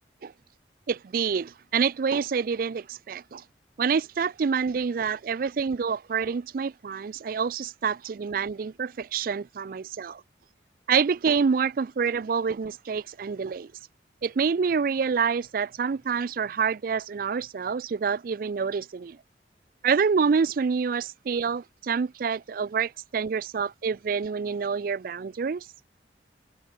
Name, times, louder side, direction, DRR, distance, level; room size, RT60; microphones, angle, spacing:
voice 1, 0.9-3.4 3.8-10.2 10.9-13.7 14.2-19.2 19.8-25.7, right 6 dB, 55° right, 0.4 m, -27 dB
head